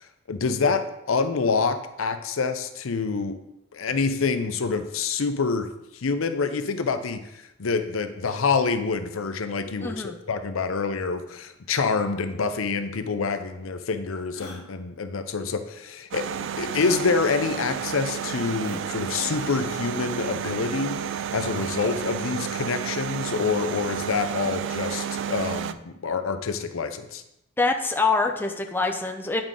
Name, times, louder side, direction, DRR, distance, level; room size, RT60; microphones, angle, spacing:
voice 1, 0.0-3.4 3.7-5.7 5.9-7.2 7.6-16.3 16.6-21.0 21.3-27.2, left 4 dB, 85° left, 9 dB, 0.6 m, -27 dB
voice 2, 9.8-10.1 27.6-29.4, left 3 dB, 10° left, 3 dB, 0.5 m, -25 dB
sound 1, 13.3-13.4 14.3-14.6 16.7-17.0 18.6-18.8 19.3-19.6 21.4-21.8, left 3 dB, 60° left, 1.2 m, -40 dB
sound 2, 16.1-25.7, right 8 dB, 60° right, 0.3 m, -31 dB
9.1 x 4.8 x 3.8 m, 0.86 s
head